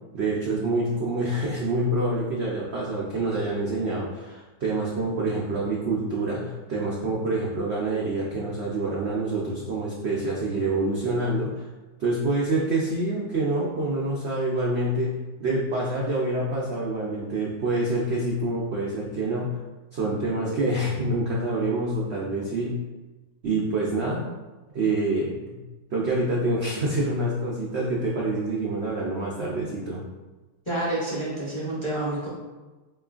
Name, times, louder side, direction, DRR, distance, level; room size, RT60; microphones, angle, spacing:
voice 1, 0.1-11.7 12.0-19.6 19.9-22.8 23.4-24.2 24.7-25.6 25.9-30.0, right 2 dB, 70° right, -4 dB, 0.6 m, -26 dB
voice 2, 30.7-32.3, right 1 dB, 25° left, -8 dB, 0.8 m, -28 dB
4.4 x 3.1 x 2.4 m, 1.2 s
omnidirectional pair, 1.7 m